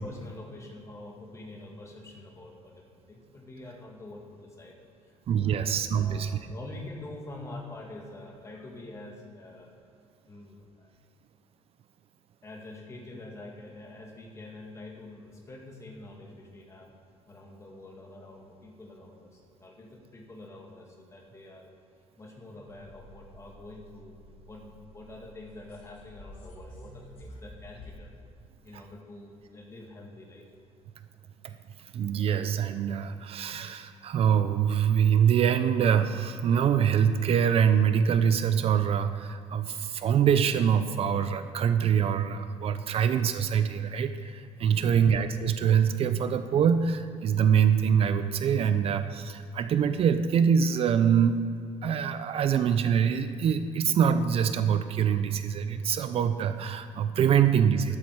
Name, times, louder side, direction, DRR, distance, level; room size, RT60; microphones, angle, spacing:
voice 1, 0.0-4.7 5.0-5.2 5.4-9.7 10.2-10.9 12.4-16.9 17.3-21.7 22.2-24.2 24.4-28.2 28.6-30.4 44.7-45.1 57.9-58.0, left 2 dB, 20° left, -1 dB, 2.2 m, -46 dB
voice 2, 5.3-6.4 28.7-28.8 31.4-51.4 51.8-58.0, right 8 dB, 50° right, 10 dB, 0.6 m, -24 dB
sound 1, 22.7-27.9, left 1 dB, 50° left, 3.6 m, -50 dB
12.5 x 11.5 x 4.8 m, 2.5 s
cardioid pair, 140°, 13 cm